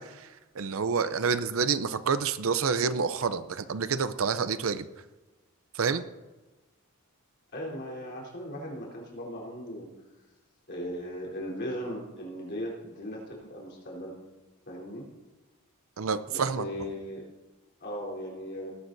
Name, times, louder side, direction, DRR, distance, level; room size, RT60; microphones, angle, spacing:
voice 1, 0.0-4.9 5.7-6.0 16.0-16.7, right 5 dB, 65° right, 12 dB, 0.6 m, -28 dB
voice 2, 7.5-9.9 10.7-14.1 14.7-15.1 16.3-17.2 17.8-18.7, equal, 50° left, -3 dB, 3.7 m, -37 dB
19.0 x 11.5 x 2.7 m, 1.2 s
head